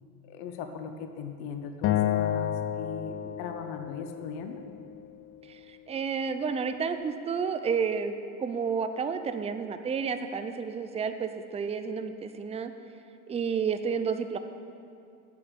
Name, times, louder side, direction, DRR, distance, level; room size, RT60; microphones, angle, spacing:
voice 1, 0.3-4.6, left 6 dB, 55° left, 6 dB, 1.1 m, -38 dB
Acoustic guitar, 1.8-5.1, left 10 dB, 30° left, 0.5 m, -30 dB
voice 2, 5.4-12.7 13.3-14.4, right 6 dB, 15° right, 9 dB, 0.6 m, -31 dB
8.4 x 6.8 x 8.3 m, 2.4 s
hypercardioid pair, 80°, 44 cm